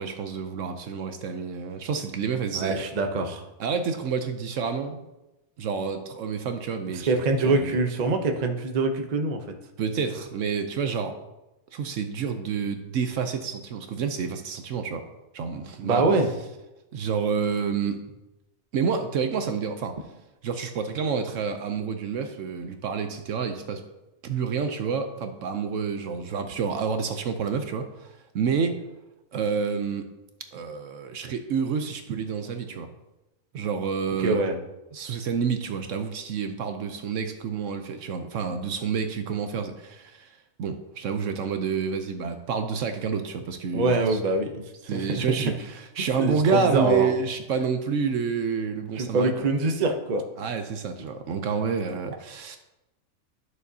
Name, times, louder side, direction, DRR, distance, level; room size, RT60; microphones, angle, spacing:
voice 1, 0.0-2.9 3.6-5.0 5.6-7.1 7.4-7.8 9.8-11.2 11.7-15.1 15.3-16.0 16.9-18.0 18.7-20.0 20.4-23.8 24.2-28.8 29.3-30.1 30.5-32.9 33.5-34.4 34.9-40.3 40.6-44.2 44.9-49.5 50.4-52.6, right 6 dB, 65° right, 7 dB, 0.9 m, -29 dB
voice 2, 2.5-3.4 7.1-9.4 15.8-16.3 34.2-34.6 43.7-44.5 44.9-45.2 46.2-47.1 48.9-50.2, right 3 dB, 40° right, 4 dB, 0.6 m, -24 dB
11.0 x 6.4 x 2.7 m, 0.97 s
omnidirectional pair, 1.5 m